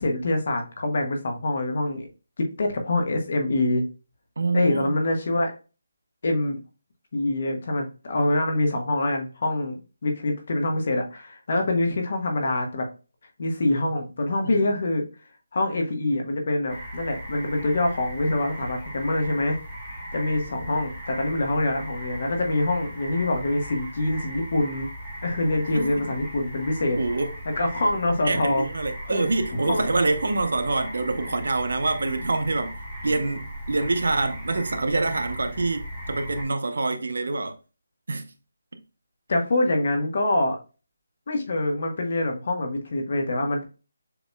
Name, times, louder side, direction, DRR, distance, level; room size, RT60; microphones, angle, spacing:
voice 1, 0.0-2.1 2.4-3.9 4.5-5.5 6.2-6.6 7.1-9.8 10.0-12.9 13.4-15.0 15.5-19.6 20.1-24.9 25.2-27.0 27.6-28.7 29.0-29.3 29.7-29.8 39.3-40.6 41.3-43.6, left 2 dB, 50° left, 1.2 m, -25 dB
voice 2, 4.4-4.9 14.4-14.8 25.4-25.9 27.0-27.3 28.2-32.7 33.0-37.6 38.1-38.3 38.7-38.8, right 3 dB, 75° right, 0.8 m, -26 dB
sound 1, 16.7-36.4, equal, ahead, 1.8 m, -38 dB
6.9 x 3.0 x 2.2 m
hypercardioid pair, 170°, 0 cm